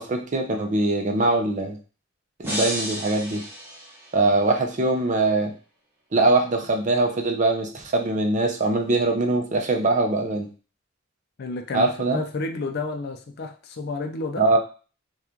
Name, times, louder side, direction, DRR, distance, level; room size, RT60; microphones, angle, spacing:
voice 1, 0.0-1.8 2.4-3.4 4.1-5.5 6.1-10.5 11.7-12.2 14.4-14.6, right 2 dB, 35° right, 4 dB, 0.5 m, -22 dB
sound 1, 2.4-4.6, equal, 10° right, 0.9 m, -33 dB
voice 2, 11.4-14.5, left 3 dB, 50° left, 6 dB, 0.4 m, -31 dB
2.9 x 2.3 x 3.6 m, 0.36 s
head